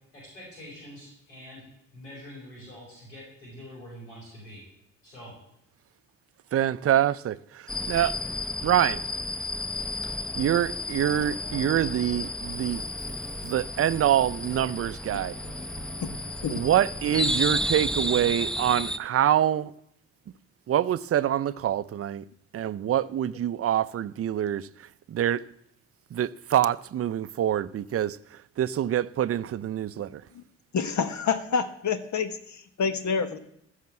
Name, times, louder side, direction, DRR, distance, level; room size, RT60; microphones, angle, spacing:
voice 1, 0.1-1.6 1.9-4.6 5.0-5.3, equal, 90° left, 5.1 m, -45 dB
voice 2, 6.5-8.2 8.6-9.0 10.4-12.8 13.4-15.4 16.5-19.7 20.7-22.2 22.5-24.7 25.1-25.4 26.1-28.2 28.6-30.2, right 11 dB, 40° right, 0.6 m, -25 dB
sound 1, 7.7-19.0, left 1 dB, ahead, 0.8 m, -32 dB
voice 3, 30.7-33.4, left 6 dB, 50° left, 1.5 m, -28 dB
14.5 x 6.6 x 7.4 m
hypercardioid pair, 45°, 36 cm